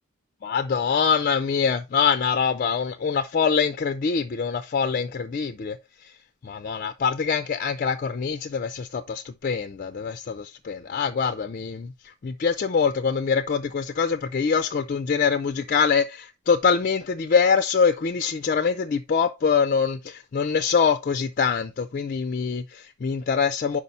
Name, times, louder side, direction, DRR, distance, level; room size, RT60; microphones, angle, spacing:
voice 1, 0.4-5.8 6.0-6.1 6.4-11.9 12.2-23.8, left 6 dB, 40° left, 0.4 m, -24 dB
5.4 x 5.0 x 4.1 m
head